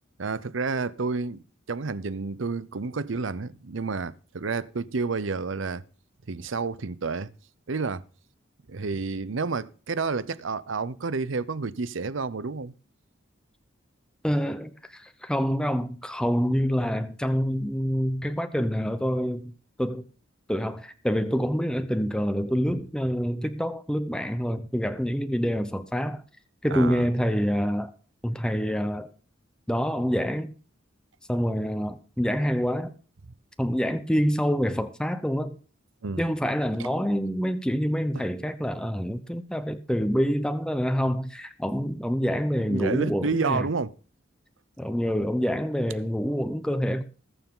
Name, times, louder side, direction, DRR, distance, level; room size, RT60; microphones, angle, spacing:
voice 1, 0.2-5.8 6.3-7.3 7.7-8.0 8.7-12.7 26.7-27.1 36.0-36.3 36.8-36.9 38.2-38.3 42.6-43.9, right 4 dB, 70° right, 0.7 m, -30 dB
voice 2, 14.2-19.5 19.8-20.0 20.5-26.2 26.6-27.9 28.2-29.1 29.7-30.5 31.3-32.9 33.6-35.6 36.2-43.7 44.8-47.0, equal, 5° left, 0.8 m, -26 dB
20.0 x 7.1 x 3.8 m
head